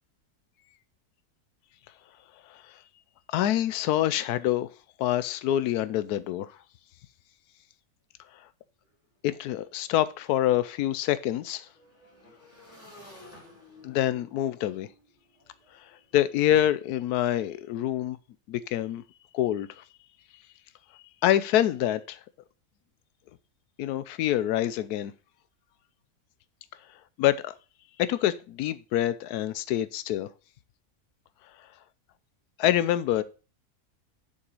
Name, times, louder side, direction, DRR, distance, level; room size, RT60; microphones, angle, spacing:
voice 1, 3.3-4.7 5.0-6.5 9.2-11.7 13.8-14.9 16.1-18.2 18.5-19.0 19.3-19.8 21.2-22.2 23.8-25.1 27.2-27.5 28.0-30.3 32.6-33.2, left 12 dB, 85° left, 1.1 m, -26 dB
Motorcycle / Engine, 8.8-8.9 9.2-16.3, left 2 dB, 10° left, 2.9 m, -54 dB
6.8 x 5.5 x 5.3 m
omnidirectional pair, 1.6 m